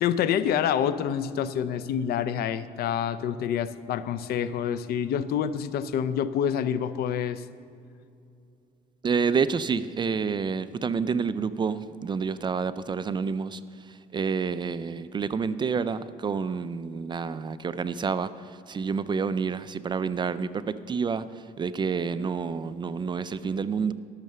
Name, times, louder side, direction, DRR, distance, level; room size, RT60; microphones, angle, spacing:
voice 1, 0.0-7.4, left 8 dB, 65° left, 14 dB, 0.5 m, -27 dB
voice 2, 9.0-13.6 13.9-18.3 18.7-21.3 21.6-23.9, right 5 dB, 25° right, 14 dB, 0.4 m, -28 dB
12.5 x 6.6 x 6.7 m, 2.5 s
cardioid pair, 110°, 17 cm